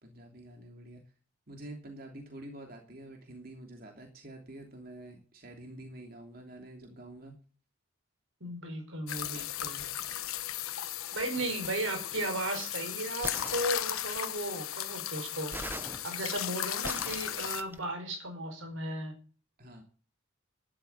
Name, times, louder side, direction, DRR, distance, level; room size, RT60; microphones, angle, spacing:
voice 1, 0.0-1.0 1.5-7.3 11.3-11.5 19.6-19.8, right 1 dB, 45° right, 3 dB, 2.9 m, -47 dB
voice 2, 8.4-9.9 11.1-15.5 16.0-19.1, right 1 dB, 70° right, 6 dB, 4.9 m, -35 dB
sound 1, 9.1-17.6, left 11 dB, 85° left, 1.2 m, -36 dB
sound 2, 13.2-14.3 15.5-17.8, right 2 dB, 10° right, 0.7 m, -42 dB
12.5 x 11.5 x 7.3 m, 0.39 s
head